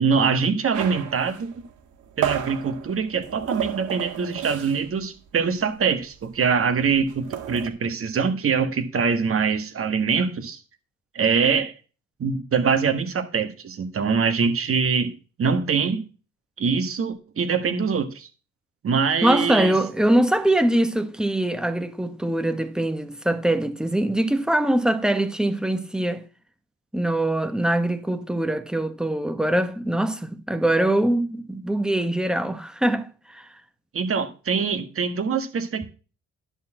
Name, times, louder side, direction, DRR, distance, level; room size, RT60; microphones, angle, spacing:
voice 1, 0.0-1.5 2.2-10.6 11.1-11.7 12.2-15.1 15.4-16.0 16.6-18.3 18.8-19.8 33.9-35.8, right 5 dB, 45° right, 1.7 m, -23 dB
sound 1, 0.7-5.0 5.3-5.5 5.8-7.7, right 10 dB, 75° right, 1.8 m, -32 dB
voice 2, 19.2-26.3 26.9-33.5, right 1 dB, ahead, 1.2 m, -23 dB
11.0 x 4.2 x 7.7 m
cardioid pair, 90°, 30 cm